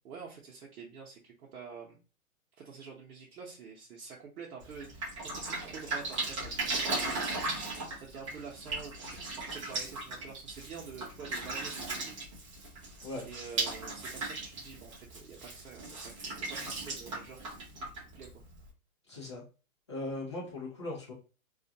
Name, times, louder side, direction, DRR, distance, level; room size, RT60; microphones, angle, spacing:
voice 1, 0.0-2.0 2.6-7.3 8.0-9.1 9.4-12.0 13.2-18.4, right 5 dB, 85° right, -3 dB, 0.8 m, -48 dB
Drip, 4.6-18.7, right 3 dB, 25° right, 0.6 m, -37 dB
voice 2, 19.1-19.4 19.9-21.1, left 2 dB, 20° left, -5 dB, 0.5 m, -38 dB
2.4 x 2.2 x 2.7 m, 0.34 s
hypercardioid pair, 170°, 43 cm